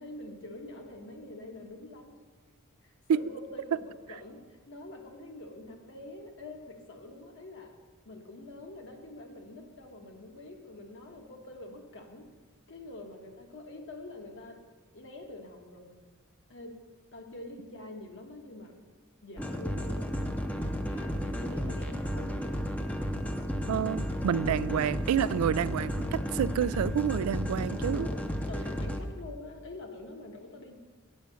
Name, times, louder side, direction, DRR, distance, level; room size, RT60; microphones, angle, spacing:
voice 1, 0.0-2.2 2.8-7.7 8.0-12.3 12.7-14.6 14.9-16.0 16.5-16.8 17.1-18.8 19.2-20.1 20.7-22.5 24.3-24.6 27.7-30.8, left 2 dB, 60° left, 3 dB, 1.3 m, -46 dB
sound 1, 19.4-29.0, equal, 5° left, 0.5 m, -33 dB
voice 2, 23.7-28.1, right 8 dB, 85° right, 17 dB, 0.3 m, -28 dB
8.8 x 6.1 x 6.9 m, 1.4 s
head